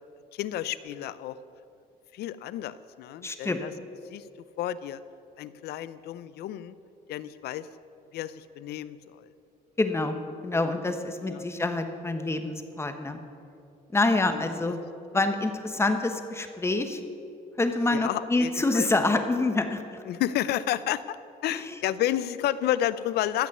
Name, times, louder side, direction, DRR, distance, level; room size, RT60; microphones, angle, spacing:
voice 1, 0.3-1.4 2.1-3.7 4.1-4.2 4.6-5.0 5.4-6.7 7.1-7.7 8.1-9.3 11.2-11.5 13.0-13.2 14.3-14.5 17.9-18.9 20.1-21.2 21.4-23.5, left 12 dB, 70° left, 16 dB, 0.6 m, -31 dB
voice 2, 3.2-3.6 9.8-10.2 10.4-13.2 13.9-14.8 15.1-17.0 17.6-19.8 21.5-21.8, left 2 dB, 15° left, 7 dB, 1.2 m, -26 dB
15.0 x 6.3 x 9.2 m, 2.5 s
cardioid pair, 110°, 17 cm